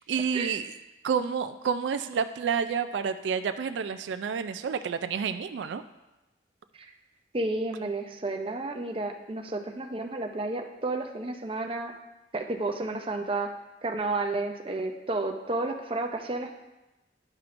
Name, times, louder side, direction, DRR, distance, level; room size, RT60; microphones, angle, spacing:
voice 1, 0.1-0.7 1.0-5.8, right 6 dB, 90° right, 10 dB, 0.3 m, -29 dB
voice 2, 7.3-11.9 12.3-13.5 13.8-16.6, right 2 dB, 30° right, 3 dB, 0.6 m, -31 dB
11.0 x 5.9 x 2.5 m, 1.0 s
head